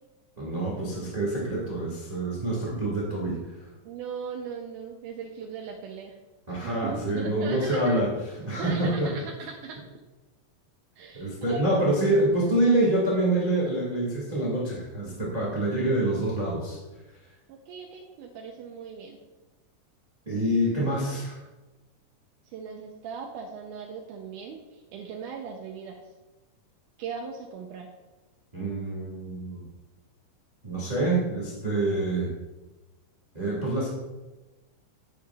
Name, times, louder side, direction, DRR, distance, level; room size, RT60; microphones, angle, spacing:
voice 1, 0.4-3.4 6.5-8.1 8.5-9.1 11.1-16.8 20.2-21.4 28.5-29.6 30.6-32.3 33.3-33.9, right 1 dB, 20° right, -4 dB, 1.1 m, -26 dB
voice 2, 3.8-6.2 6.5-8.0 8.5-9.8 11.0-11.6 17.5-19.2 22.5-26.0 27.0-27.9, right 6 dB, 80° right, 1 dB, 2.2 m, -39 dB
9.3 x 9.2 x 2.3 m, 1.1 s
omnidirectional pair, 3.7 m